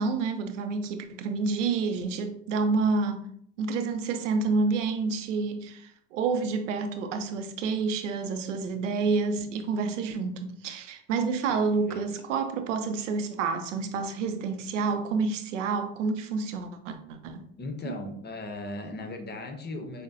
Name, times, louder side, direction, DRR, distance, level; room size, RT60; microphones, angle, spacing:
voice 1, 0.0-3.3 3.6-17.4 17.8-18.0, right 4 dB, 90° right, 0.5 m, -29 dB
voice 2, 17.6-20.0, left 2 dB, 30° left, 0.8 m, -37 dB
5.2 x 2.1 x 2.6 m
hypercardioid pair, 70°, 36 cm